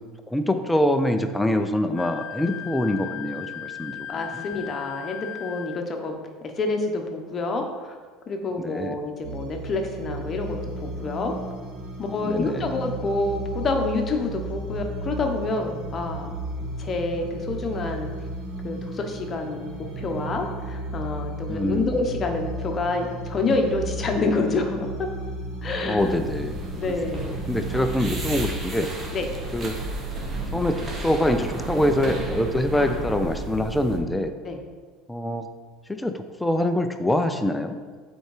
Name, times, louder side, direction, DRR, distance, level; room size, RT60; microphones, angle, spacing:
voice 1, 0.3-4.3 8.6-9.0 12.2-12.7 21.5-21.9 25.8-26.6 26.9-27.0 27.3-28.9 29.5-29.8 30.5-34.3 35.1-35.5 35.9-37.8, left 1 dB, 10° left, 7 dB, 0.5 m, -25 dB
Wind instrument woodwind instrument, 1.9-5.8, left 10 dB, 60° left, 0.3 m, -37 dB
voice 2, 4.1-6.1 6.4-8.0 8.3-11.3 12.0-18.1 18.6-25.1 25.6-26.2 26.8-27.5 29.1-29.3 34.4-34.6, left 3 dB, 35° left, 3 dB, 1.1 m, -28 dB
sound 1, 9.2-28.6, right 2 dB, 70° right, 1.3 m, -34 dB
sound 2, 26.0-34.0, right 2 dB, 35° right, 1.4 m, -32 dB
7.8 x 4.5 x 5.0 m, 1.5 s
supercardioid pair, 110°, 0 cm